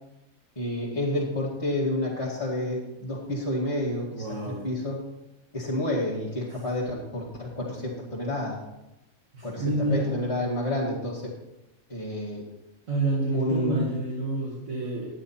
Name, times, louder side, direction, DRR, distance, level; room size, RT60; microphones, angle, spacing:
voice 1, 0.6-5.0 5.5-8.6 9.4-11.3 11.9-12.5 13.3-13.9, left 1 dB, 25° left, -7 dB, 2.1 m, -29 dB
voice 2, 4.1-4.7 9.3-10.1 12.9-15.1, right 2 dB, 75° right, -5 dB, 2.4 m, -28 dB
11.5 x 9.1 x 4.3 m, 0.91 s
omnidirectional pair, 1.4 m